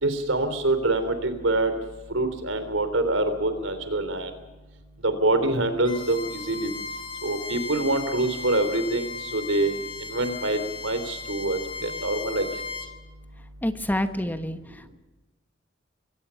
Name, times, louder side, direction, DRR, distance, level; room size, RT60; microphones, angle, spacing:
voice 1, 0.0-1.7 2.1-4.3 5.0-6.7 7.2-9.1 9.3-9.7 10.1-12.5, right 2 dB, 90° right, 10 dB, 3.4 m, -25 dB
Bowed string instrument, 5.8-12.9, left 4 dB, 25° left, 1.9 m, -36 dB
voice 2, 13.6-14.9, left 1 dB, 10° left, 9 dB, 1.1 m, -28 dB
23.5 x 17.0 x 7.0 m, 1.1 s
head